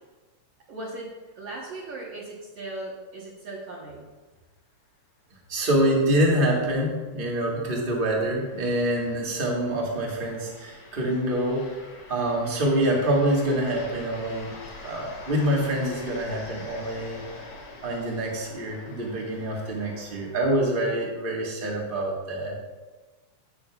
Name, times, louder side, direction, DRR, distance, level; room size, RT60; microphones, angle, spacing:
voice 1, 0.7-4.1, right 2 dB, 60° right, -5 dB, 2.0 m, -38 dB
voice 2, 5.5-11.8 12.1-17.2 17.8-22.6, right 1 dB, 30° right, -2 dB, 1.0 m, -26 dB
sound 1, 6.8-21.1, left 2 dB, 85° left, 3.3 m, -45 dB
15.0 x 6.3 x 2.4 m, 1.3 s
omnidirectional pair, 3.4 m